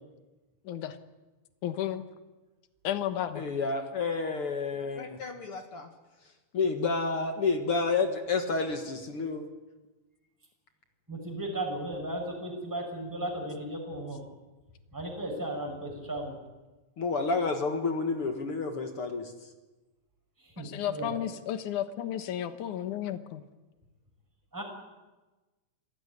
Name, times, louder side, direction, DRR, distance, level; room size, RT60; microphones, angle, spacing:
voice 1, 0.7-1.0 1.6-2.1 2.8-3.4 20.6-23.4, left 11 dB, 80° left, 10 dB, 2.7 m, -33 dB
voice 2, 3.4-5.9 6.5-9.5 17.0-19.5, left 4 dB, 50° left, 6 dB, 2.3 m, -30 dB
voice 3, 11.1-14.2 14.9-16.4 20.4-21.2 24.5-24.6, right 1 dB, 5° right, 0 dB, 5.8 m, -35 dB
26.0 x 17.0 x 9.7 m, 1.2 s
omnidirectional pair, 3.5 m